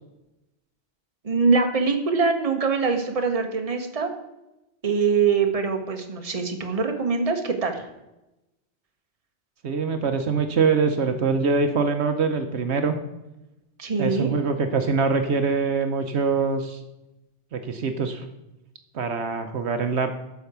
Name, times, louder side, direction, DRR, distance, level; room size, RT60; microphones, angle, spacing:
voice 1, 1.2-4.1 4.8-7.8 13.8-14.3, right 4 dB, 30° right, 4 dB, 1.1 m, -23 dB
voice 2, 9.6-13.0 14.0-16.8 17.5-18.3 18.9-20.1, right 4 dB, 70° right, 7 dB, 1.0 m, -24 dB
11.5 x 4.7 x 6.7 m, 0.95 s
omnidirectional pair, 1.2 m